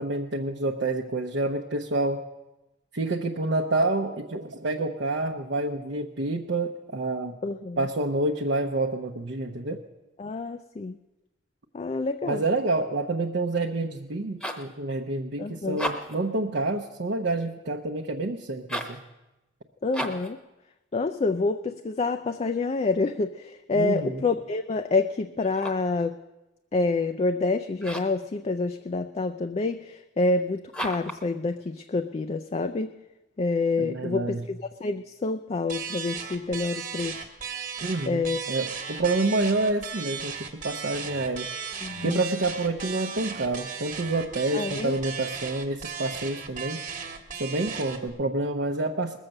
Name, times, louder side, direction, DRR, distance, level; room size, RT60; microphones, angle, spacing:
voice 1, 0.0-2.2 2.9-7.4 7.8-9.8 12.2-19.0 23.7-24.2 33.8-34.5 37.8-41.5 42.0-46.8 47.4-49.2, right 2 dB, 60° right, 0 dB, 0.7 m, -28 dB
voice 2, 7.4-7.9 10.2-11.0 11.7-12.4 15.4-15.8 19.8-20.4 20.9-26.2 26.7-32.9 33.4-37.3 38.1-38.4 41.8-42.2 44.5-45.0, left 3 dB, 35° left, 8 dB, 0.4 m, -27 dB
sound 1, 14.1-14.7 15.6-16.3 18.6-19.0 19.9-20.3 25.4-25.9 27.8-28.2 30.7-31.2, equal, 5° left, 1.0 m, -34 dB
sound 2, 35.7-48.1, right 6 dB, 45° right, 1.3 m, -36 dB
20.0 x 7.3 x 6.5 m, 1.0 s
head